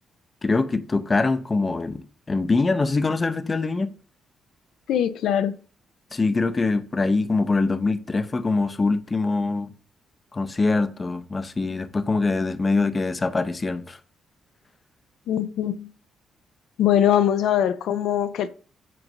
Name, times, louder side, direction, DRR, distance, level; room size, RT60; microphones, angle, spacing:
voice 1, 0.4-2.0 2.3-3.9 6.1-9.7 10.3-14.0, left 3 dB, 25° left, 0.5 m, -23 dB
voice 2, 4.9-5.6 15.3-15.9 16.8-18.5, left 10 dB, 80° left, 0.4 m, -22 dB
7.5 x 2.6 x 5.3 m
cardioid pair, 130°, 0 cm